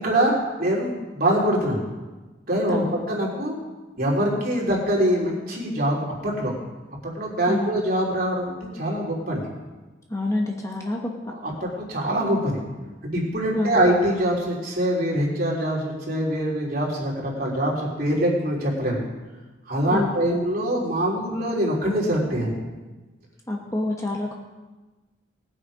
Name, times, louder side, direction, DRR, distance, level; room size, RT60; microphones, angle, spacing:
voice 1, 0.0-1.8 2.5-3.6 4.0-6.5 7.2-9.5 11.4-12.6 13.0-19.0 19.7-22.6, right 1 dB, 50° right, -3 dB, 3.5 m, -24 dB
voice 2, 2.7-3.0 7.5-7.8 10.1-11.0 13.5-13.8 19.9-20.2 23.5-24.3, left 2 dB, 15° left, 0 dB, 1.3 m, -27 dB
20.0 x 7.8 x 5.0 m, 1.2 s
head